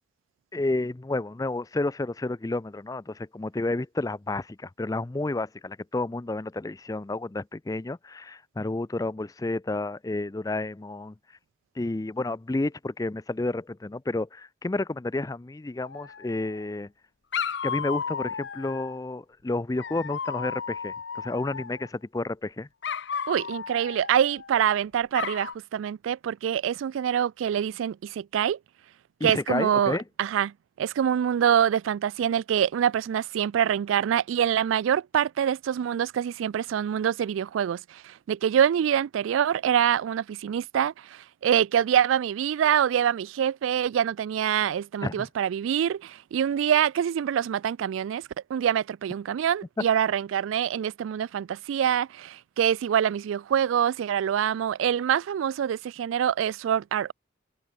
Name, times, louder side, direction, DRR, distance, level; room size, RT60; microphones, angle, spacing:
voice 1, 0.5-11.1 11.8-16.9 17.6-22.7 29.2-30.0 45.0-45.3, left 2 dB, 20° left, 0.4 m, -31 dB
Dog, 15.8-16.6 17.3-19.0 19.8-21.9 22.8-24.7 25.1-25.5, left 6 dB, 60° left, 0.6 m, -34 dB
voice 2, 23.3-28.6 29.2-57.1, right 9 dB, 90° right, 0.3 m, -25 dB
head